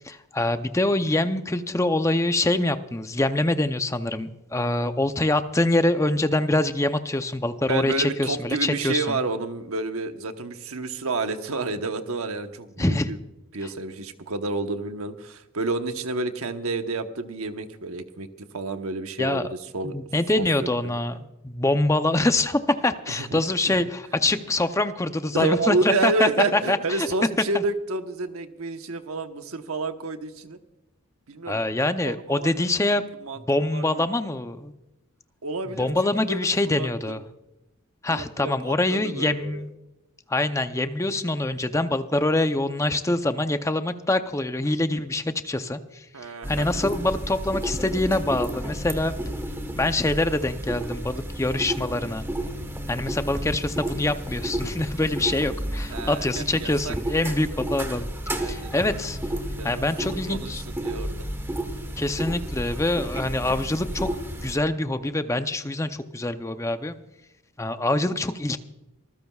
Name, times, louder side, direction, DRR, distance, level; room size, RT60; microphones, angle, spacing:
voice 1, 0.0-9.2 12.8-13.1 19.2-19.5 19.8-21.2 21.4-27.1 27.5-27.6 31.5-33.0 33.4-34.7 35.7-37.2 38.0-39.7 40.3-46.1 46.5-49.2 49.8-52.2 52.9-58.1 58.4-59.2 59.6-60.6 62.0-64.1 64.4-67.0 67.6-68.6, left 2 dB, 15° left, 9 dB, 0.6 m, -25 dB
voice 2, 7.7-13.2 13.5-18.3 18.5-19.4 19.7-19.9 20.4-20.7 23.1-23.8 25.3-30.6 31.3-31.6 32.0-32.6 33.2-33.4 33.7-34.0 35.4-37.2 38.1-39.6 46.1-46.8 49.1-49.2 55.9-56.9 58.4-59.1 59.5-61.2, right 3 dB, 85° right, 7 dB, 1.1 m, -30 dB
sound 1, 46.4-64.6, right 1 dB, 10° right, 1.2 m, -32 dB
25.0 x 14.5 x 2.4 m, 0.96 s
head